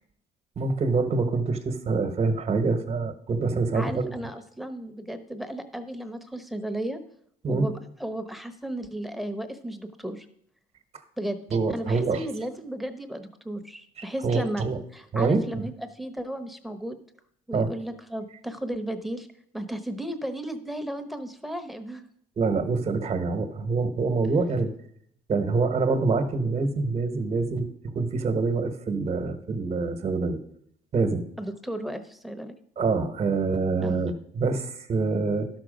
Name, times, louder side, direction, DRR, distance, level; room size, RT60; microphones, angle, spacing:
voice 1, 0.6-4.1 7.4-7.7 11.5-12.3 14.0-14.8 15.1-15.6 17.5-17.7 22.4-24.7 25.3-27.7 27.9-30.4 30.9-31.2 32.8-35.5, right 4 dB, 40° right, 9 dB, 1.2 m, -25 dB
voice 2, 3.7-7.0 7.5-7.7 8.0-10.3 11.2-11.4 11.7-14.6 14.9-17.0 17.5-19.3 19.5-22.0 31.4-32.5 33.8-34.0, right 1 dB, ahead, 8 dB, 0.9 m, -34 dB
12.0 x 6.1 x 5.2 m, 0.68 s
cardioid pair, 110°, 17 cm